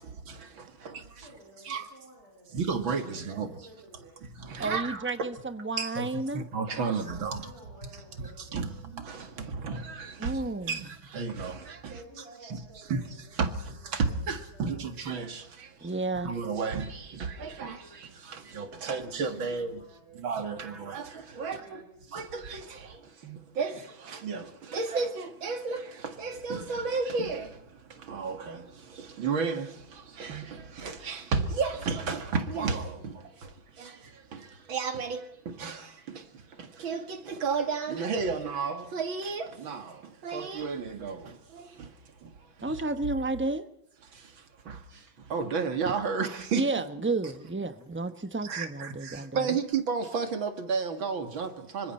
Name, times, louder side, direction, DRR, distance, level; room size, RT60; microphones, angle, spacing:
voice 1, 0.0-1.3 1.6-1.9 2.5-3.7 4.2-5.1 5.8-6.1 6.3-7.5 7.8-12.0 12.4-19.8 20.1-21.8 22.1-42.8 44.0-46.8 48.4-51.9, right 5 dB, 75° right, 2.7 m, -33 dB
voice 2, 0.8-2.7 3.3-4.2 6.8-8.8 11.8-15.0 18.8-20.8 21.4-22.0, right 2 dB, 30° right, 6.4 m, -54 dB
voice 3, 4.6-6.4 10.2-10.8 15.8-16.3 42.6-43.7 46.5-49.5, right 2 dB, 15° right, 0.4 m, -31 dB
27.0 x 24.5 x 4.4 m
omnidirectional pair, 2.2 m